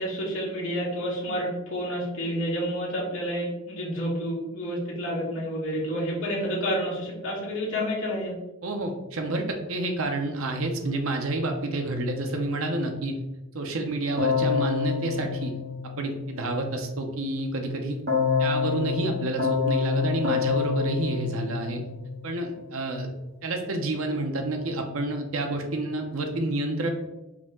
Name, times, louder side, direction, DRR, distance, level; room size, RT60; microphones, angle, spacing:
voice 1, 0.0-8.4, equal, 65° left, -4 dB, 1.6 m, -29 dB
voice 2, 8.6-13.2 13.5-15.5 16.0-18.0 18.4-21.8 22.2-23.1 23.4-26.9, right 2 dB, 70° right, 4 dB, 0.7 m, -29 dB
Keyboard (musical), 14.2-16.5 18.1-22.3, left 5 dB, 50° right, 1.2 m, -27 dB
4.9 x 2.9 x 3.5 m, 0.97 s
head